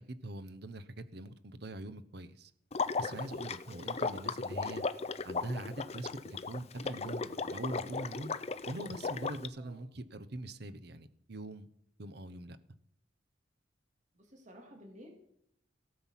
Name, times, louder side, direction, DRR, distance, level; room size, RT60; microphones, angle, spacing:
voice 1, 0.0-2.5 3.0-4.8 5.2-8.3 8.7-11.7 12.0-12.6, right 1 dB, 60° right, 13 dB, 1.0 m, -43 dB
Water / Liquid, 2.7-9.5, left 4 dB, 35° left, 0.6 m, -36 dB
voice 2, 3.5-3.8 9.6-9.9 14.1-15.1, equal, 40° right, 2 dB, 3.0 m, -54 dB
17.0 x 7.8 x 5.9 m, 0.73 s
head